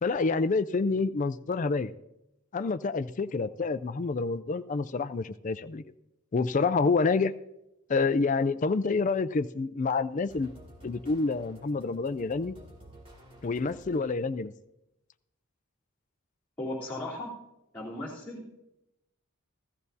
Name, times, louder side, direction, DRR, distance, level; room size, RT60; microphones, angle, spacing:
voice 1, 0.0-1.9 2.5-5.8 6.3-7.3 7.9-10.5 10.8-12.6 13.4-14.5, left 4 dB, 35° left, 12 dB, 0.4 m, -28 dB
sound 1, 10.3-14.4, right 1 dB, 25° right, 2.6 m, -52 dB
voice 2, 16.6-17.3 17.7-18.4, left 1 dB, 10° left, -9 dB, 3.2 m, -36 dB
15.5 x 14.0 x 2.7 m, 0.88 s
head